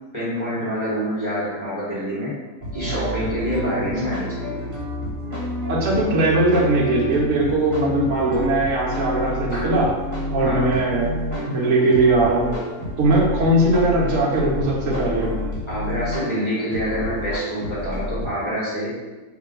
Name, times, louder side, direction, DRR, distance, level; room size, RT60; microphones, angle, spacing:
voice 1, 0.1-2.4 2.7-4.6 9.5-9.7 10.4-10.7 15.7-19.0, equal, 20° left, -10 dB, 1.4 m, -26 dB
sound 1, 2.6-18.3, left 1 dB, 40° right, 1.3 m, -29 dB
voice 2, 5.7-9.9 10.3-11.1 11.5-12.6 13.0-15.3, right 2 dB, 55° right, -4 dB, 1.0 m, -20 dB
3.4 x 2.7 x 3.7 m, 1.2 s
omnidirectional pair, 1.6 m